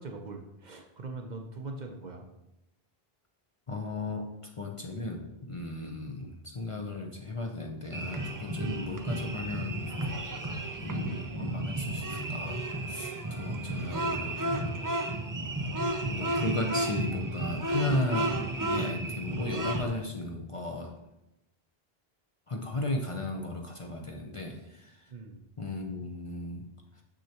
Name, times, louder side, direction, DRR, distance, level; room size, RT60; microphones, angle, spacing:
voice 1, 0.0-2.3 24.5-24.6 25.1-25.5, right 3 dB, 50° right, 3 dB, 0.7 m, -42 dB
voice 2, 3.7-9.7 10.8-12.6 12.9-14.7 16.1-18.4 18.7-20.9 22.5-25.0 25.6-26.6, left 2 dB, 35° left, 1 dB, 0.6 m, -35 dB
sound 1, 7.9-19.9, right 1 dB, 35° right, 0.3 m, -33 dB
6.6 x 6.3 x 2.9 m, 0.89 s
omnidirectional pair, 1.0 m